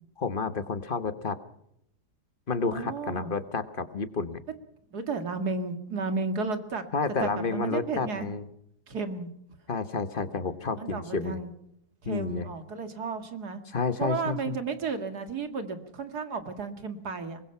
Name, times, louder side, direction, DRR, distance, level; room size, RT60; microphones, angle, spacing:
voice 1, 0.2-1.4 2.5-4.4 6.9-8.5 9.7-11.4 12.0-12.5 13.7-14.6, left 4 dB, 35° left, 11 dB, 1.3 m, -30 dB
voice 2, 2.7-3.3 4.9-6.8 7.2-8.3 8.9-9.3 10.8-11.5 12.0-13.6 14.0-17.4, right 4 dB, 75° right, 8 dB, 2.5 m, -33 dB
24.0 x 21.0 x 5.7 m, 0.76 s
omnidirectional pair, 1.7 m